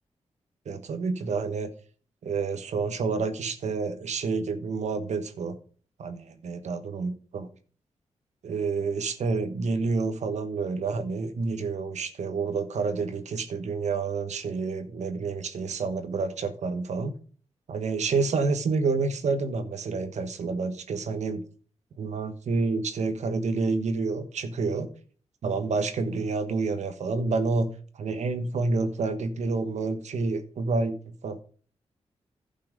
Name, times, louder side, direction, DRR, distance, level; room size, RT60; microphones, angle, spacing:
voice 1, 0.6-1.7 2.2-5.6 6.0-7.5 8.4-17.1 17.7-21.4 22.0-24.9 25.4-27.7 27.9-31.4, right 4 dB, 80° right, 9 dB, 1.2 m, -29 dB
11.0 x 5.7 x 5.2 m, 0.42 s
cardioid pair, 75°, 12 cm